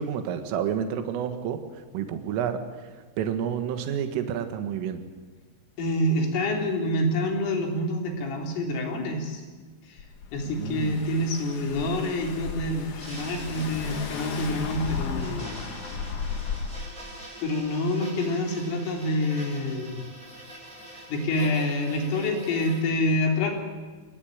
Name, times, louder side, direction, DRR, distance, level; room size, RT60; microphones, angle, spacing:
voice 1, 0.0-1.6 1.9-2.7 3.2-5.0 10.5-11.1, right 8 dB, 90° right, 7 dB, 4.0 m, -29 dB
voice 2, 5.8-9.4 9.9-10.0 10.3-15.6 17.4-20.0 21.1-23.5, left 1 dB, 85° left, 2 dB, 6.3 m, -27 dB
Car / Engine, 10.0-16.9, left 6 dB, 55° left, 2.5 m, -35 dB
sound 1, 13.0-22.8, right 1 dB, 5° right, 5.4 m, -44 dB
27.5 x 20.0 x 8.9 m, 1.4 s
omnidirectional pair, 5.6 m